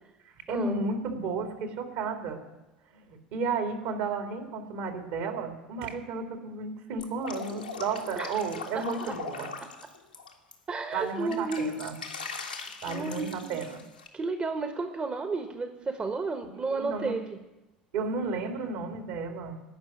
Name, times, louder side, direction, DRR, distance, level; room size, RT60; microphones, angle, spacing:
voice 1, 0.2-2.4 2.9-9.5 10.9-12.0 12.8-13.8 16.6-17.2 17.9-19.6, right 4 dB, 60° right, 5 dB, 2.3 m, -33 dB
Drip, 7.0-10.5 10.9-14.1, left 5 dB, 85° left, 1.7 m, -40 dB
voice 2, 8.7-9.2 10.7-11.8 12.9-13.6 14.1-17.4, right 3 dB, 25° right, 7 dB, 1.2 m, -32 dB
17.5 x 6.1 x 9.9 m, 1.0 s
figure-of-eight pair, 70°, 5 cm